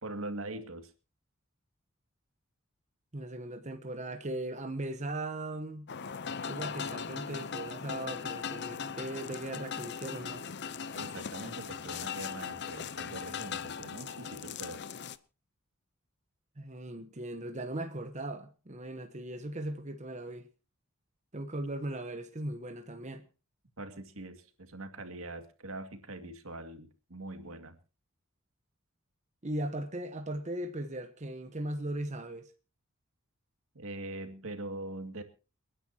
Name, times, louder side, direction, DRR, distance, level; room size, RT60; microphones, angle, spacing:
voice 1, 0.0-0.9 10.9-14.8 23.8-27.8 33.7-35.2, right 2 dB, 80° right, 2.2 m, -42 dB
voice 2, 3.1-5.9 6.5-10.5 16.6-20.5 21.3-23.3 29.4-32.5, right 1 dB, 35° right, 1.1 m, -38 dB
sound 1, 5.9-15.2, left 7 dB, 55° left, 0.7 m, -39 dB
29.5 x 10.0 x 2.9 m
head